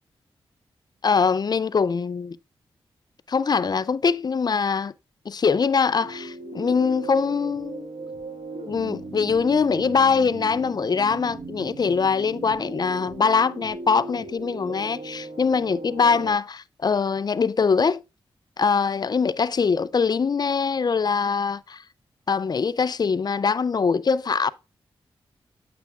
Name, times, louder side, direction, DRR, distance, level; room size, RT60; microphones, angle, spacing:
voice 1, 1.0-2.4 3.3-4.9 5.3-7.9 8.7-18.0 18.6-21.8 22.3-24.5, left 5 dB, 45° left, 0.4 m, -23 dB
sound 1, 6.0-16.3, right 3 dB, 70° right, 2.4 m, -37 dB
8.9 x 6.9 x 2.4 m
cardioid pair, 50°, 10 cm